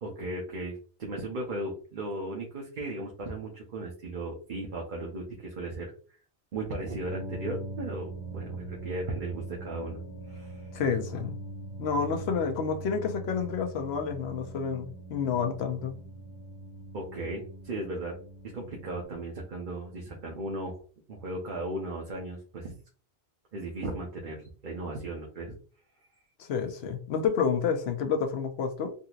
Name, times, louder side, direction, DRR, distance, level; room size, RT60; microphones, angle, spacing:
voice 1, 0.0-5.9 6.5-10.0 10.3-10.7 16.9-18.1 18.5-20.8 21.1-22.7 23.5-25.5, right 2 dB, 55° right, 0.9 m, -36 dB
sound 1, 7.1-19.0, right 2 dB, 25° left, 1.1 m, -41 dB
voice 2, 10.7-11.3 11.8-16.0 26.4-28.9, left 6 dB, 85° left, 0.9 m, -29 dB
3.7 x 2.8 x 2.4 m
omnidirectional pair, 1.0 m